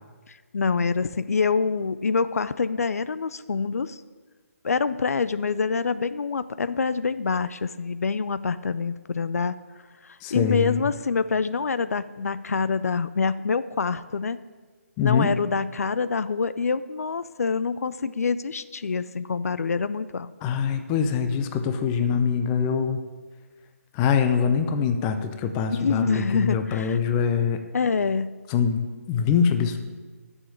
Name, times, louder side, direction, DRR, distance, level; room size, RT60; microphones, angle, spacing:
voice 1, 0.3-4.0 4.6-9.5 10.0-14.4 15.0-20.3 25.7-27.0 27.7-28.3, left 5 dB, 80° left, 15 dB, 0.4 m, -26 dB
voice 2, 10.2-10.9 15.0-15.3 20.4-23.0 23.9-27.7 28.5-28.8 29.1-29.8, left 7 dB, 20° left, 8 dB, 0.6 m, -23 dB
7.4 x 6.3 x 8.0 m, 1.4 s
hypercardioid pair, 155°, 8 cm